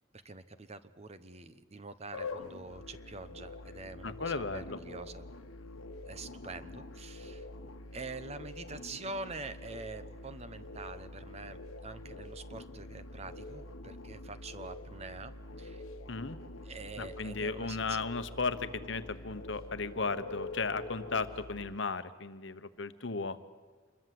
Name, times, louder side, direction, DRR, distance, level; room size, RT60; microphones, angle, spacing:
voice 1, 0.2-5.2 6.1-7.5 7.9-15.3 15.6-15.8 16.6-18.0, right 3 dB, 30° right, 11 dB, 1.0 m, -45 dB
sound 1, 2.1-21.7, left 2 dB, 90° left, 1.3 m, -46 dB
voice 2, 4.0-4.8 16.1-16.4 17.0-23.4, left 4 dB, 60° left, 12 dB, 1.1 m, -35 dB
27.0 x 21.5 x 7.7 m, 1.4 s
head